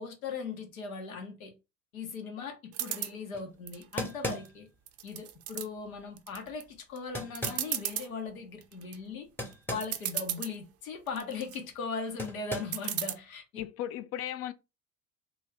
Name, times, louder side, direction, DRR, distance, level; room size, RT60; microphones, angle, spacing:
voice 1, 0.0-1.5 1.9-4.7 5.0-9.3 9.7-13.6, left 5 dB, 80° left, 1.0 m, -39 dB
sound 1, 2.7-3.1 3.7-4.5 4.9-5.7 6.2-6.6 7.0-7.1 7.3-8.1 8.6-9.0 9.5-9.6 9.8-10.5 11.1-11.6 12.7-13.1, right 12 dB, 35° right, 0.5 m, -35 dB
sound 2, 3.3-3.5 4.0-4.7 7.1-7.7 9.4-10.0 10.3-10.4 12.2-12.9, equal, 5° left, 0.9 m, -37 dB
voice 2, 13.5-14.5, left 12 dB, 35° left, 0.4 m, -36 dB
3.1 x 2.5 x 3.2 m
hypercardioid pair, 65°, 41 cm